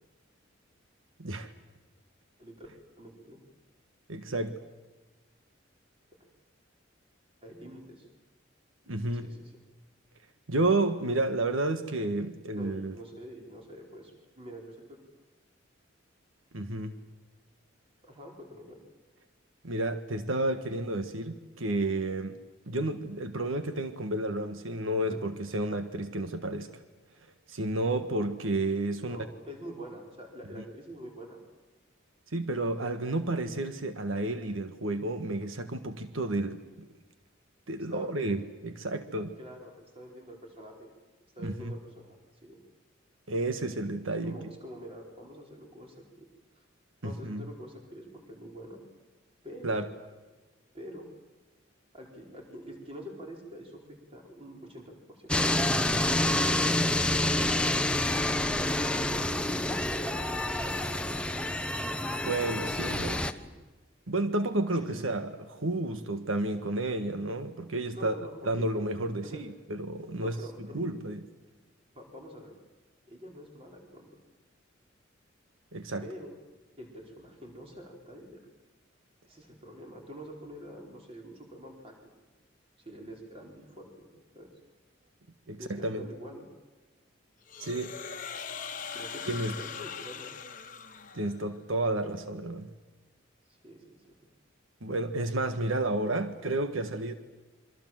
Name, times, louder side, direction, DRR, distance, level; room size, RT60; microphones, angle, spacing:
voice 1, 3.0-3.4 7.4-8.1 9.1-9.5 12.5-15.0 18.0-18.8 25.1-25.2 29.0-31.4 37.8-38.1 39.4-40.9 41.4-42.6 44.2-46.2 46.5-46.6 47.0-48.8 49.4-49.8 50.7-51.1 51.9-56.2 56.5-57.7 58.4-61.5 62.8-63.5 64.8-64.9 67.9-68.3 68.8-68.9 69.2-69.4 70.2-71.0 71.9-72.5 73.1-74.1 76.0-76.4 76.8-78.4 79.2-81.9 82.8-84.1 84.3-84.5 85.6-86.5 88.9-90.3 93.5-94.1, equal, 30° right, 0 dB, 4.9 m, -46 dB
voice 2, 4.1-4.6 8.9-9.3 10.5-12.9 16.5-17.0 19.6-22.4 22.7-26.7 27.5-29.2 32.3-36.6 37.7-39.4 41.4-41.7 43.3-44.4 47.0-47.5 49.6-49.9 62.2-63.1 64.1-65.3 65.6-68.1 68.5-70.4 70.7-71.2 75.7-76.0 85.5-86.1 87.6-87.9 89.3-89.6 91.1-92.7 94.8-97.1, right 2 dB, 90° right, 8 dB, 1.5 m, -31 dB
sound 1, 55.3-63.3, left 1 dB, 5° left, 0.9 m, -28 dB
sound 2, 87.5-91.5, left 6 dB, 40° left, 1.3 m, -41 dB
27.5 x 24.5 x 7.7 m, 1.2 s
head